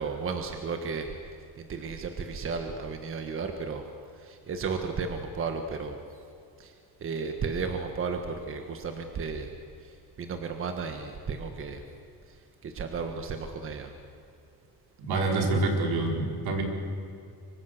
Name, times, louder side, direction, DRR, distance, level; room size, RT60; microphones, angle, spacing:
voice 1, 0.0-3.8 4.1-6.2 6.6-11.8 12.3-13.9, right 5 dB, 35° right, 5 dB, 1.4 m, -34 dB
voice 2, 15.0-16.6, right 2 dB, 75° right, 1 dB, 4.9 m, -26 dB
25.0 x 24.0 x 6.6 m, 2.5 s
cardioid pair, 170°, 38 cm